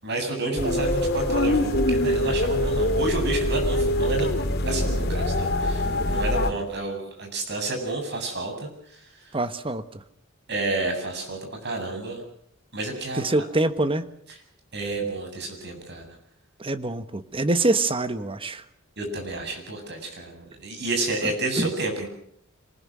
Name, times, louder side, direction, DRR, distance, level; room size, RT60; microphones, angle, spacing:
voice 1, 0.0-4.4 4.7-8.7 10.5-12.2 12.7-13.5 14.7-16.0 19.0-22.1, right 2 dB, 55° right, 4 dB, 7.8 m, -30 dB
voice 2, 0.5-0.8 9.3-10.0 13.1-14.1 16.6-18.6 21.2-21.7, right 2 dB, 25° right, 11 dB, 1.4 m, -25 dB
sound 1, 0.6-6.5, left 1 dB, 50° left, 2.9 m, -24 dB
27.0 x 20.0 x 6.3 m, 0.69 s
head